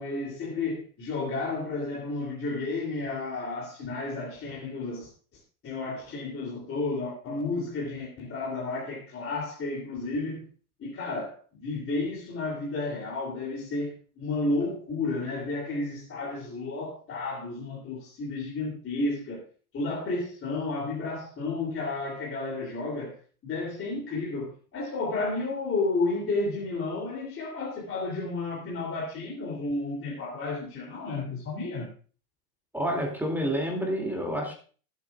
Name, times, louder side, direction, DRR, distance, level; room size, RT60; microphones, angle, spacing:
voice 1, 0.0-5.1 5.6-10.5 10.8-19.4 19.7-23.2 23.4-31.9, left 3 dB, 30° left, 3.1 m, -32 dB
voice 2, 32.7-34.5, equal, 5° right, 2.6 m, -29 dB
21.0 x 8.3 x 2.4 m
hypercardioid pair, 110°, 44 cm